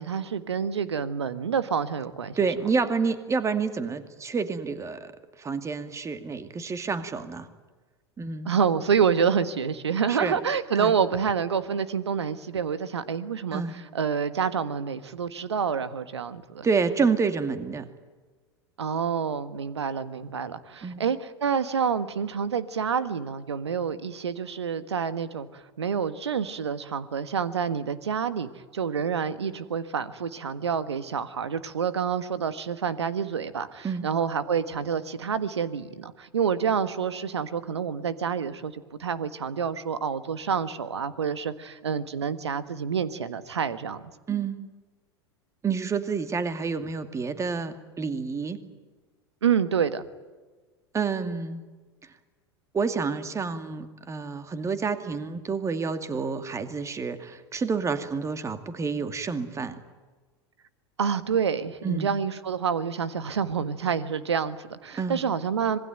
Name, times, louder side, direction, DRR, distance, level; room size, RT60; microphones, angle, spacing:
voice 1, 0.0-2.4 8.4-13.6 13.9-16.7 18.8-44.0 49.4-50.1 61.0-65.8, right 7 dB, 80° right, 14 dB, 1.5 m, -28 dB
voice 2, 2.3-5.1 5.4-7.5 8.2-8.5 10.1-10.4 10.7-11.0 13.5-13.8 16.6-17.9 20.8-21.0 33.8-34.1 44.3-44.6 45.6-48.6 50.9-51.6 52.0-52.1 52.7-59.8 61.8-62.2 65.0-65.2, right 5 dB, 20° right, 10 dB, 2.4 m, -29 dB
26.0 x 21.0 x 9.2 m, 1.3 s
figure-of-eight pair, 85°, 14 cm